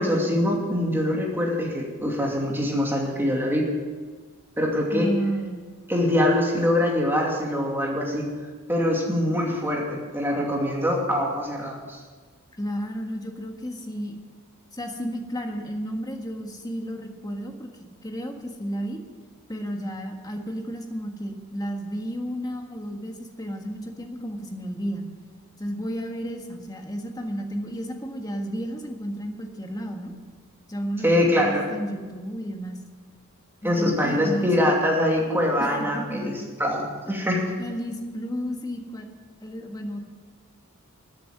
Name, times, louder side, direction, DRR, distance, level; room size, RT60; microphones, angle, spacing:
voice 1, 0.0-3.7 4.6-5.1 5.9-8.3 8.7-12.0 31.0-31.6 33.6-37.5, left 1 dB, 10° right, -1 dB, 2.5 m, -24 dB
voice 2, 4.9-5.6 12.6-14.2 14.7-19.0 19.5-25.1 25.6-30.1 30.7-32.8 33.6-34.7 35.6-36.3 37.6-39.1 39.4-40.0, equal, 20° left, 3 dB, 1.6 m, -32 dB
13.0 x 7.9 x 9.2 m, 1.4 s
head